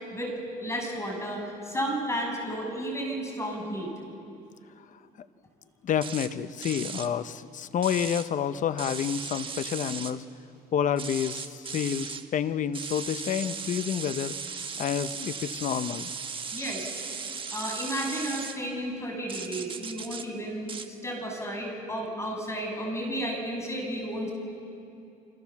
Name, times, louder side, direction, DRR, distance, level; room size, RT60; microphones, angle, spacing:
voice 1, 0.6-3.9 16.5-16.9 17.5-24.3, equal, 15° left, 1 dB, 6.9 m, -33 dB
voice 2, 5.8-10.2 10.7-14.3 14.8-16.1, left 8 dB, 50° left, 13 dB, 0.9 m, -29 dB
sound 1, 6.0-6.3 6.6-7.1 7.8-8.3 8.8-10.1 11.0-12.2 12.7-18.6 19.3-20.3 20.7-20.9, right 5 dB, 30° right, 1.5 m, -37 dB
28.5 x 25.5 x 7.3 m, 2.7 s
cardioid pair, 110°, 17 cm